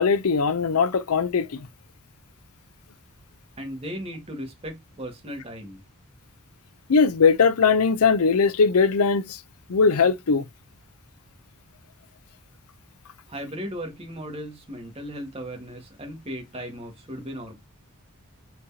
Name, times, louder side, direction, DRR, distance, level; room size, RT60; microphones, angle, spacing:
voice 1, 0.0-1.6 6.9-9.4 9.7-10.4, left 5 dB, 80° left, 0.6 m, -20 dB
voice 2, 3.6-5.8 13.3-17.5, equal, 30° right, 1.7 m, -36 dB
4.5 x 3.8 x 2.7 m
head